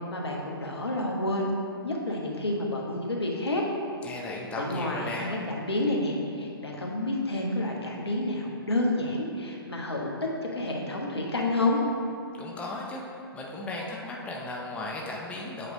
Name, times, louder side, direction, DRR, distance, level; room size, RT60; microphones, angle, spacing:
voice 1, 0.1-1.5 1.8-3.6 4.6-10.1 10.5-11.8, left 1 dB, 90° left, -1 dB, 1.2 m, -29 dB
voice 2, 4.0-5.3 12.4-13.0 13.3-15.7, left 2 dB, 10° left, -2 dB, 0.6 m, -36 dB
8.0 x 3.1 x 5.0 m, 2.5 s
figure-of-eight pair, 130°, 13 cm